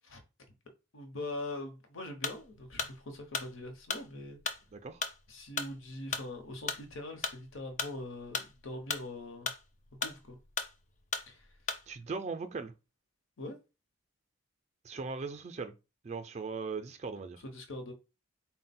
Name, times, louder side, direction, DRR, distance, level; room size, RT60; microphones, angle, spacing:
voice 1, 0.9-4.4 5.3-9.5 10.0-10.4 11.3-11.5 13.4-13.6 17.4-17.9, left 2 dB, 80° left, 0.9 m, -42 dB
sound 1, 2.2-12.0, left 5 dB, 35° left, 0.4 m, -37 dB
voice 2, 4.7-5.0 11.9-12.7 14.8-15.7 16.0-17.4, right 4 dB, 35° right, 0.3 m, -39 dB
4.0 x 2.1 x 4.1 m
head